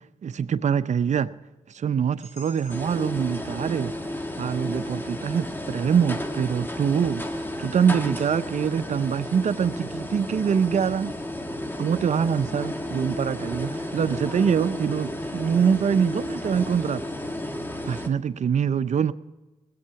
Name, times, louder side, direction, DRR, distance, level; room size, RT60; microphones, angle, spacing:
voice 1, 0.2-1.3 1.7-3.9 4.4-7.2 7.6-11.1 11.8-17.0 17.9-19.1, right 7 dB, 65° right, 0.6 m, -24 dB
sound 1, 2.2-6.2, left 3 dB, 60° left, 4.7 m, -54 dB
sound 2, 2.7-18.1, left 1 dB, 15° left, 1.5 m, -33 dB
19.5 x 8.5 x 5.7 m
cardioid pair, 65°, 13 cm